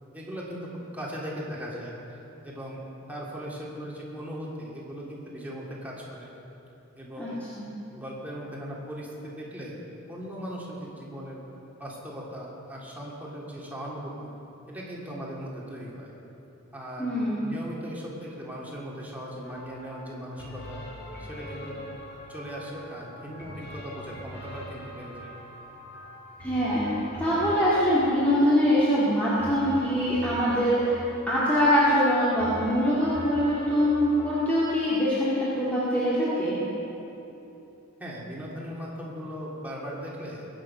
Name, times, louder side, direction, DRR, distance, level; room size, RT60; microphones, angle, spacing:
voice 1, 0.1-1.9 2.4-6.3 6.9-7.4 7.9-9.8 10.1-11.5 11.8-14.3 14.7-16.1 16.7-17.1 17.4-20.8 21.2-21.8 22.3-25.3 38.0-40.4, equal, 10° right, -5 dB, 2.8 m, -38 dB
voice 2, 17.0-17.5 26.4-26.9 27.2-31.0 31.3-36.6, equal, 10° left, -10 dB, 2.6 m, -23 dB
sound 1, 19.4-35.0, equal, 55° left, 2.7 m, -42 dB
22.0 x 9.0 x 5.8 m, 3.0 s
head